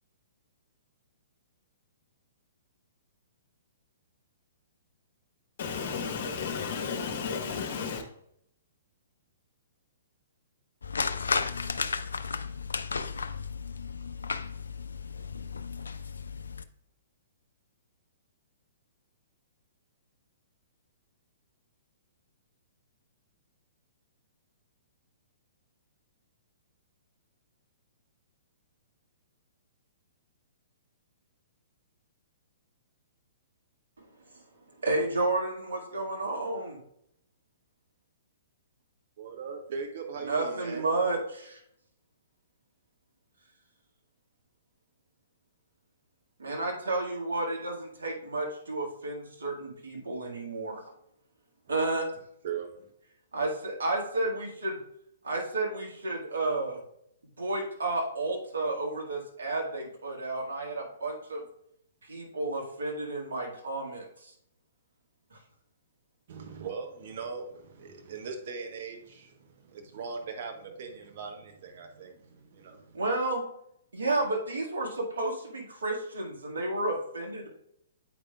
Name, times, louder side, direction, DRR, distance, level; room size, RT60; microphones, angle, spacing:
voice 1, 5.6-8.0, left 5 dB, 50° left, 5 dB, 1.0 m, -33 dB
sound 1, 10.8-16.6, left 5 dB, 70° left, 0.3 m, -34 dB
voice 2, 34.8-36.8 40.2-41.6 46.4-50.8 51.7-52.0 53.3-54.8 55.2-56.8 57.4-61.4 62.1-64.3 72.9-73.4 73.9-77.5, right 2 dB, 65° right, -1 dB, 1.7 m, -31 dB
voice 3, 39.2-40.9 52.4-52.9 66.3-73.0, right 5 dB, 50° right, 4 dB, 0.8 m, -40 dB
8.6 x 5.0 x 2.3 m, 0.73 s
figure-of-eight pair, 115°, 0 cm